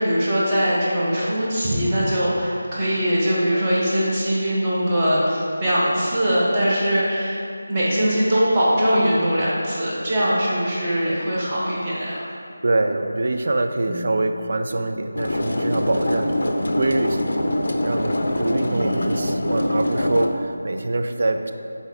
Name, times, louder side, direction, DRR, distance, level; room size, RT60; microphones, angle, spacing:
voice 1, 0.0-7.4 7.7-12.3 18.7-19.2, equal, 20° right, -8 dB, 1.2 m, -21 dB
voice 2, 12.6-21.5, right 2 dB, 40° right, 6 dB, 0.4 m, -25 dB
sound 1, 13.8-14.4 17.3-20.8, equal, 5° left, 1.0 m, -44 dB
sound 2, 15.1-20.3, left 1 dB, 50° left, 0.6 m, -24 dB
7.8 x 4.2 x 3.7 m, 2.5 s
figure-of-eight pair, 160°, 0 cm